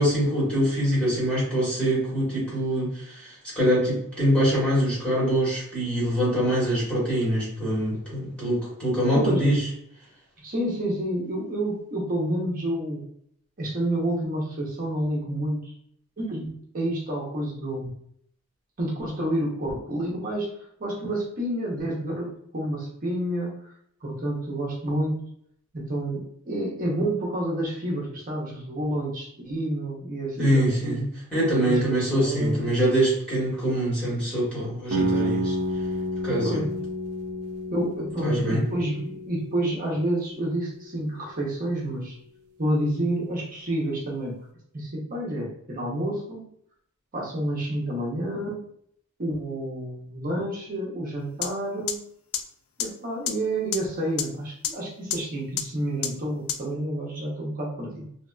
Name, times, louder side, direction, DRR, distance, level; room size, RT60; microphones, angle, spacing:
voice 1, 0.0-9.6 30.4-35.5 36.2-36.7 38.2-38.6, equal, 5° left, -8 dB, 1.4 m, -24 dB
voice 2, 9.1-9.5 10.4-13.0 13.6-15.7 16.2-17.9 18.8-20.5 20.8-23.7 24.0-25.1 25.7-31.0 31.7-32.7 36.4-36.7 37.7-42.1 42.6-44.4 44.7-46.5 47.1-48.6 49.2-52.0 52.8-58.1, right 1 dB, 40° right, -3 dB, 0.7 m, -29 dB
sound 1, 34.9-40.7, right 1 dB, 80° right, 0.5 m, -30 dB
sound 2, 51.4-51.5 51.9-52.0 52.3-52.4 52.8-52.9 53.3-53.4 53.7-53.8 54.2-54.3 54.6-54.7 55.1-55.2 55.6-55.7 56.0-56.1 56.5-56.6, left 10 dB, 70° left, 0.4 m, -26 dB
2.8 x 2.8 x 2.2 m, 0.68 s
head